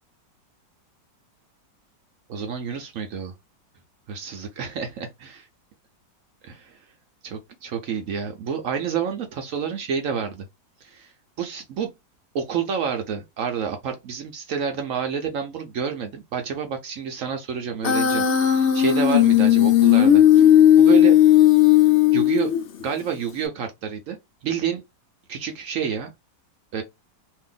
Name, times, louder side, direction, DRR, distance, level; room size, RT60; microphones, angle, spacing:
voice 1, 2.3-3.3 4.1-5.5 6.4-6.8 7.2-10.4 10.8-11.1 11.4-11.9 12.3-21.2 22.1-22.5 22.8-24.8 25.3-26.1 26.7-26.8, right 7 dB, 70° right, 0.8 m, -29 dB
Human voice, 17.8-22.8, left 11 dB, 85° left, 0.6 m, -15 dB
2.7 x 2.6 x 3.7 m
omnidirectional pair, 2.0 m